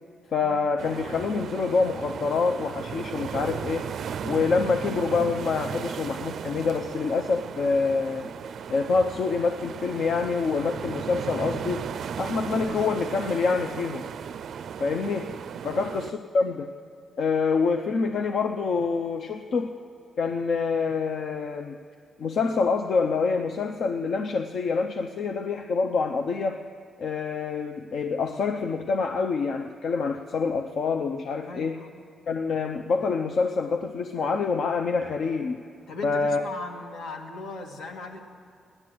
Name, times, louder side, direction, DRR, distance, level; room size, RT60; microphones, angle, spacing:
voice 1, 0.3-3.9 4.3-8.3 8.7-11.8 12.2-14.1 14.8-15.3 15.6-16.7 17.2-19.7 20.2-21.7 22.2-26.6 27.0-31.8 32.3-35.6 36.0-36.4, left 4 dB, 60° left, 5 dB, 0.6 m, -26 dB
sound 1, 0.8-16.1, right 7 dB, 60° right, 0.4 m, -35 dB
voice 2, 31.5-31.9 35.9-38.2, left 3 dB, 80° left, 2 dB, 1.7 m, -38 dB
16.5 x 11.0 x 7.7 m, 2.4 s
cardioid pair, 145°, 0 cm